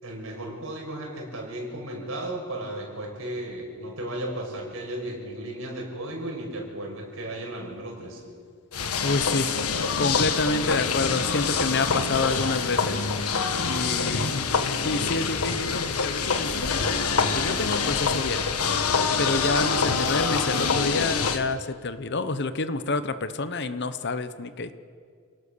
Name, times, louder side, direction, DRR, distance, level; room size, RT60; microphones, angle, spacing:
voice 1, 0.0-8.3, right 1 dB, 65° right, -1 dB, 6.4 m, -35 dB
sound 1, 8.7-21.4, left 5 dB, 85° left, 1.5 m, -25 dB
voice 2, 9.0-9.5 10.0-13.1 13.7-18.4 19.2-24.7, left 3 dB, 50° left, 12 dB, 0.9 m, -28 dB
28.0 x 18.5 x 6.8 m, 2.2 s
head